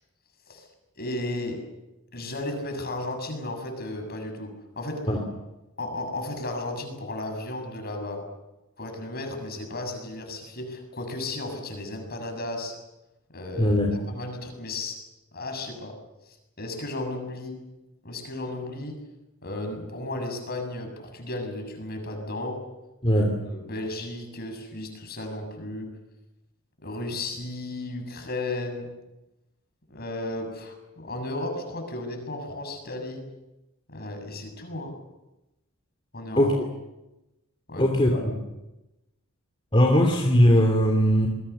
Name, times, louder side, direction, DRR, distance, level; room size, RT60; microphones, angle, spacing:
voice 1, 1.0-1.7 2.1-5.1 5.8-8.3 8.8-12.8 13.3-13.8 14.1-15.0 15.3-16.0 16.3-17.7 18.0-19.0 19.4-22.6 23.2-25.9 26.8-28.9 29.9-33.3 33.9-35.0 36.1-36.5 37.7-37.8 38.1-38.2, left 2 dB, 45° left, 5 dB, 7.1 m, -34 dB
voice 2, 13.6-13.9 23.0-23.3 36.4-36.5 37.8-38.3 39.7-41.3, equal, 25° left, 1 dB, 2.9 m, -20 dB
28.5 x 22.0 x 7.0 m, 0.98 s
head